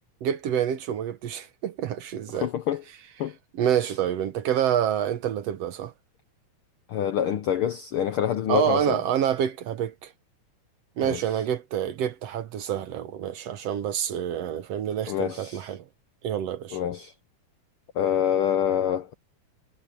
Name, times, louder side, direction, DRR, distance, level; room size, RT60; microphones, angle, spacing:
voice 1, 0.2-2.5 3.6-5.9 8.5-10.1 11.0-15.9 16.2-16.8, right 9 dB, 65° right, 1.9 m, -27 dB
voice 2, 2.3-2.8 3.2-3.3 6.9-9.0 11.0-11.2 15.1-15.7 16.7-17.1 17.9-19.1, left 9 dB, 75° left, 1.2 m, -26 dB
omnidirectional pair, 3.4 m